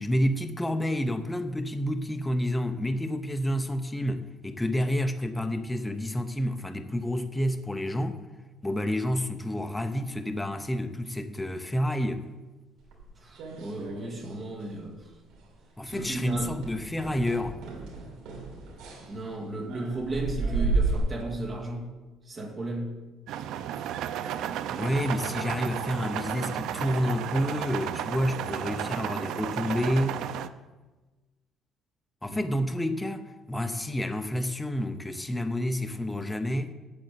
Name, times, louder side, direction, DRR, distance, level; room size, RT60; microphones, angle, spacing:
voice 1, 0.0-8.2 8.6-12.3 15.8-17.6 24.7-30.2 32.2-36.7, equal, 5° left, 0.6 m, -29 dB
sound 1, 12.9-14.4 14.6-15.0 15.3-15.5 15.9-21.0, right 3 dB, 85° right, 3.0 m, -33 dB
voice 2, 13.2-15.1 15.9-16.5 19.1-21.9 22.3-22.9 32.3-32.5, right 2 dB, 30° right, 2.0 m, -34 dB
sound 2, 23.3-30.5, right 10 dB, 70° right, 0.5 m, -33 dB
8.7 x 7.6 x 8.2 m
cardioid pair, 170°, 0 cm